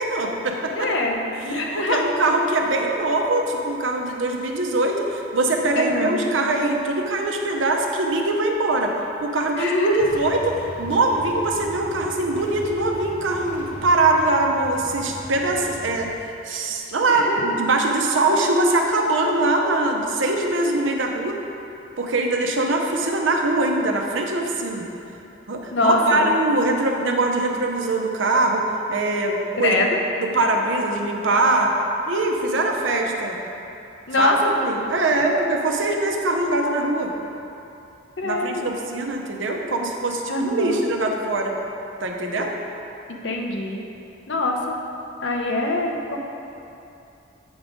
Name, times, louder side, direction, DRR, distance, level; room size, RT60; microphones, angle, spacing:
voice 1, 0.0-0.9 1.5-8.9 9.2-10.4 10.8-16.1 16.4-21.4 22.0-24.9 25.5-29.8 30.2-31.7 32.1-33.4 34.2-37.1 38.2-41.5 42.0-42.5, right 2 dB, 85° right, 2 dB, 0.7 m, -22 dB
voice 2, 0.7-2.0 5.8-6.2 9.6-10.2 17.1-17.5 25.7-26.3 29.6-30.0 34.1-34.8 35.2-35.5 38.2-38.7 40.3-40.8 43.1-43.8 44.3-44.8 45.2-46.2, left 2 dB, 75° left, 1 dB, 0.8 m, -24 dB
Motorcycle / Engine starting / Idling, 10.0-16.1, equal, 45° left, 0.8 m, -39 dB
8.0 x 3.7 x 5.1 m, 2.8 s
head